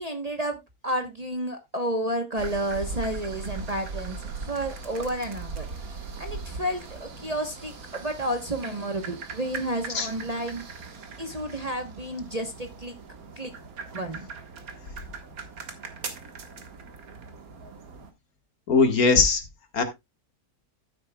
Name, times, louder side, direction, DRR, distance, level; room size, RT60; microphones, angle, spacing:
voice 1, 0.0-10.6 11.2-13.0 13.4-13.5 13.9-14.3, right 1 dB, 30° right, 4 dB, 1.0 m, -31 dB
sound 1, 2.4-18.1, right 4 dB, 65° right, 1.9 m, -40 dB
voice 2, 18.7-19.4 19.7-19.8, left 4 dB, 70° left, 6 dB, 2.0 m, -20 dB
12.0 x 9.5 x 2.2 m, 0.21 s
omnidirectional pair, 1.6 m